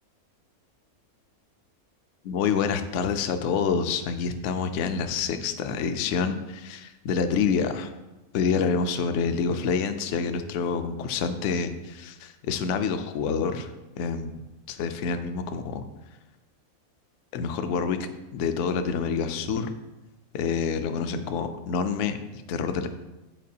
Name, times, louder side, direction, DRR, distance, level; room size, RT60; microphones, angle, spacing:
voice 1, 2.2-7.9 8.3-14.3 14.7-15.8 17.3-18.0 18.3-19.7 20.3-22.9, left 6 dB, 65° left, 8 dB, 0.8 m, -27 dB
9.0 x 4.6 x 2.8 m, 1.1 s
omnidirectional pair, 1.5 m